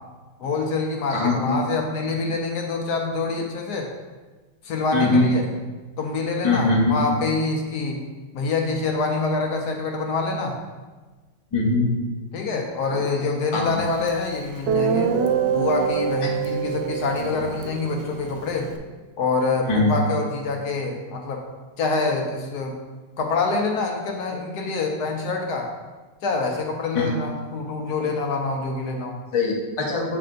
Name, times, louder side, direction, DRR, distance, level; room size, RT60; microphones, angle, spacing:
voice 1, 0.4-3.9 4.6-5.4 6.0-8.1 8.3-10.5 12.3-15.1 15.5-18.7 19.2-21.4 21.8-22.8 23.2-25.7 26.2-29.2, left 3 dB, 70° left, 1 dB, 1.1 m, -26 dB
voice 2, 1.1-1.6 4.9-5.3 6.4-7.0 11.5-11.9 12.9-13.1 13.5-13.8 16.2-16.3 19.7-19.9 26.9-27.1 29.3-30.2, left 3 dB, 30° left, -2 dB, 0.6 m, -22 dB
Guitar, 14.1-14.2 14.7-18.8, right 7 dB, 75° right, 1.2 m, -25 dB
7.7 x 3.3 x 3.8 m, 1.3 s
omnidirectional pair, 2.0 m